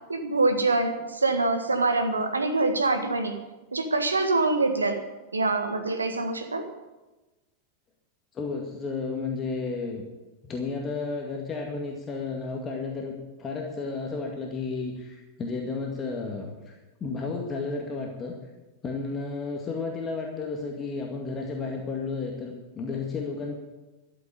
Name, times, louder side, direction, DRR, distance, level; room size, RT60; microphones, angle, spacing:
voice 1, 0.1-3.3 3.7-5.0 5.3-6.7, right 3 dB, 80° right, 7 dB, 1.6 m, -25 dB
voice 2, 8.3-10.0 10.4-13.1 13.4-18.3 18.8-23.5, left 4 dB, 25° left, 0 dB, 2.1 m, -32 dB
13.0 x 7.9 x 9.7 m, 1.1 s
figure-of-eight pair, 90°, 0 cm